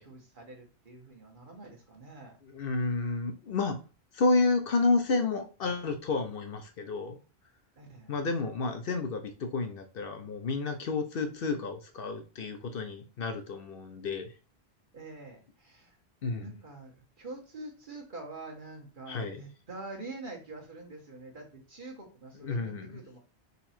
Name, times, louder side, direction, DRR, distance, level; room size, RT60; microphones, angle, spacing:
voice 1, 0.0-2.4 7.8-8.1 14.9-16.0 16.4-23.2, right 2 dB, 50° right, 0 dB, 1.4 m, -45 dB
voice 2, 2.5-3.8 4.1-7.2 8.1-14.3 16.2-16.5 19.1-19.4 22.4-22.9, left 3 dB, 60° left, 6 dB, 0.8 m, -30 dB
4.0 x 3.0 x 4.3 m, 0.33 s
omnidirectional pair, 1.1 m